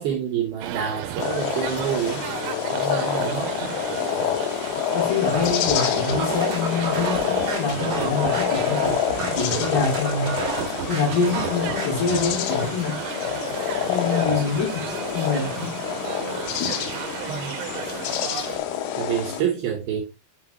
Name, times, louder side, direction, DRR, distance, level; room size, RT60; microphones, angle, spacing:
voice 1, 0.0-2.3 2.7-3.7 17.3-17.6 18.5-18.6 18.9-20.0, right 8 dB, 70° right, 2.6 m, -28 dB
sound 1, 0.6-18.6, right 11 dB, 85° right, 2.9 m, -33 dB
sound 2, 1.2-19.4, left 10 dB, 80° left, 2.2 m, -27 dB
voice 2, 4.9-10.3 10.9-13.0 13.9-15.8 16.6-16.8 18.3-18.5, left 5 dB, 60° left, 4.4 m, -26 dB
sound 3, 5.3-12.2, right 6 dB, 50° right, 2.0 m, -31 dB
8.5 x 3.8 x 2.9 m
omnidirectional pair, 5.3 m